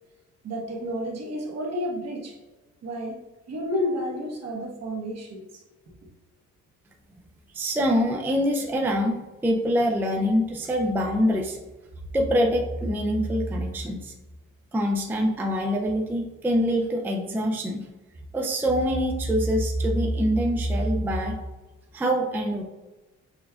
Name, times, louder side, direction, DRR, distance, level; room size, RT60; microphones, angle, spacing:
voice 1, 0.4-2.4 2.8-3.2 3.5-5.6, equal, 60° right, -1 dB, 1.0 m, -31 dB
voice 2, 7.5-11.6 12.1-14.1 14.7-17.9 18.3-21.4 21.9-22.6, equal, 5° right, 1 dB, 0.4 m, -24 dB
6.1 x 2.2 x 2.3 m, 1.1 s
cardioid pair, 90°, 30 cm